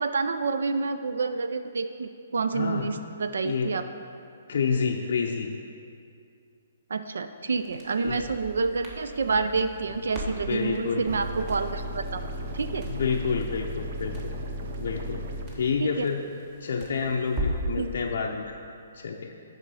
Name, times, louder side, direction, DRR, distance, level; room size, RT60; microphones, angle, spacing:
voice 1, 0.0-3.8 6.9-12.2 12.5-12.9 15.8-16.1 17.8-17.9, right 4 dB, 75° right, 9 dB, 0.3 m, -28 dB
voice 2, 2.5-2.9 3.4-3.8 4.5-5.5 8.0-8.2 10.5-11.1 12.9-14.3 14.8-15.2 15.6-16.3 16.6-18.5 18.9-19.3, left 5 dB, 65° left, 1 dB, 0.5 m, -28 dB
Crackle, 7.6-17.8, right 1 dB, 30° right, 1.4 m, -39 dB
sound 1, 11.1-15.5, equal, 50° right, 0.7 m, -35 dB
6.6 x 4.9 x 6.2 m, 2.4 s
hypercardioid pair, 135°, 0 cm